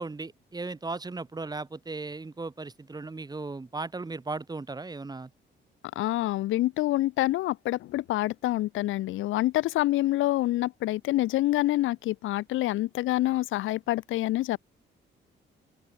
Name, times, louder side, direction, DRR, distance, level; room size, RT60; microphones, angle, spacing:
voice 1, 0.0-5.3, right 3 dB, 20° right, 1.4 m, -36 dB
voice 2, 6.0-14.6, left 16 dB, 80° left, 0.7 m, -27 dB
open air
cardioid pair, 90°, 20 cm